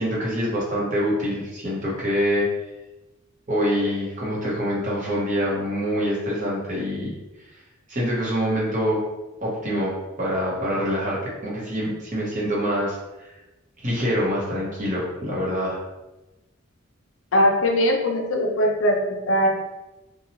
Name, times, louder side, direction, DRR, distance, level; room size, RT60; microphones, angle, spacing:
voice 1, 0.0-2.5 3.5-7.1 7.9-9.0 9.4-13.0 13.8-15.8, equal, 35° right, -6 dB, 0.8 m, -25 dB
voice 2, 17.3-19.5, equal, 75° left, 1 dB, 0.5 m, -20 dB
2.8 x 2.2 x 2.8 m, 1.0 s
head